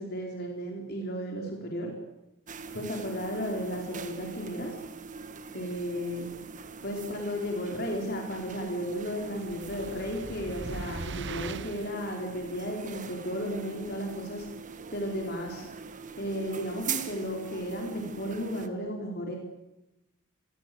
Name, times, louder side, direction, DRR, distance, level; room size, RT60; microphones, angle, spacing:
voice 1, 0.0-1.9 2.7-4.7 5.5-6.3 6.8-14.5 14.9-15.7 16.2-19.4, equal, 50° left, 1 dB, 4.7 m, -34 dB
sound 1, 2.5-18.7, right 6 dB, 35° right, 1.6 m, -42 dB
sound 2, 9.3-12.0, right 4 dB, 55° right, 0.8 m, -40 dB
27.5 x 21.5 x 7.9 m, 0.94 s
head